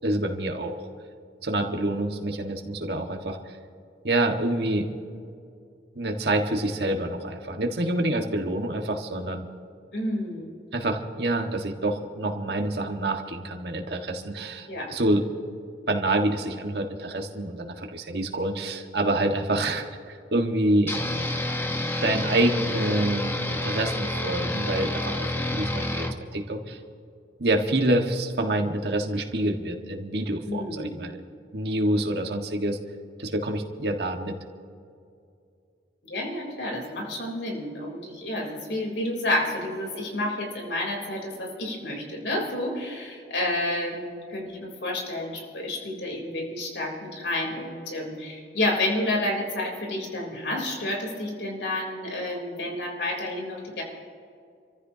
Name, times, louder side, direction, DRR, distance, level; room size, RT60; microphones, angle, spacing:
voice 1, 0.0-0.9 1.4-3.4 4.0-4.9 6.0-9.4 10.7-15.4 15.9-21.0 22.0-26.8 27.4-31.2 31.5-32.8 33.2-34.4, right 1 dB, 65° right, 3 dB, 1.7 m, -27 dB
voice 2, 9.9-10.5 14.7-14.9 30.4-30.9 36.0-53.8, left 1 dB, 85° left, 0 dB, 3.7 m, -30 dB
sound 1, 20.9-26.1, left 1 dB, 15° left, 1.1 m, -29 dB
28.0 x 14.5 x 2.9 m, 2.4 s
head